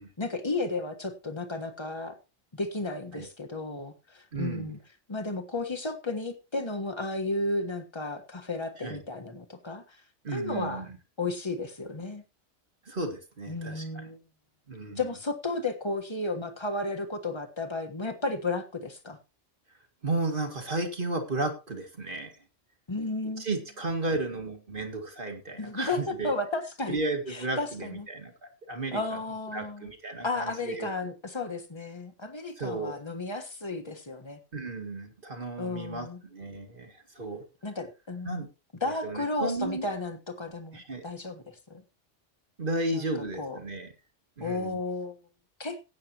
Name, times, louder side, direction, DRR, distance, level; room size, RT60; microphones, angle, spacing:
voice 1, 0.0-2.2 2.5-4.8 5.1-10.0 10.3-10.9 11.2-12.2 13.5-14.2 15.0-19.2 22.9-23.5 25.6-27.0 27.3-28.1 28.9-29.9 30.2-34.4 35.6-36.2 37.6-38.4 38.8-41.8 42.9-43.1 43.4-43.6 44.4-45.2 45.6-45.8, left 2 dB, 25° left, 6 dB, 1.4 m, -33 dB
voice 2, 4.3-4.8 8.8-9.0 10.2-11.0 12.9-14.0 14.7-15.0 20.0-22.4 23.4-26.3 26.9-29.2 29.5-30.9 32.6-33.0 34.5-37.4 38.2-38.5 38.8-39.9 40.7-41.0 42.6-43.9 44.4-44.8, right 2 dB, 45° right, 4 dB, 2.2 m, -34 dB
18.5 x 8.7 x 2.9 m, 0.28 s
omnidirectional pair, 1.2 m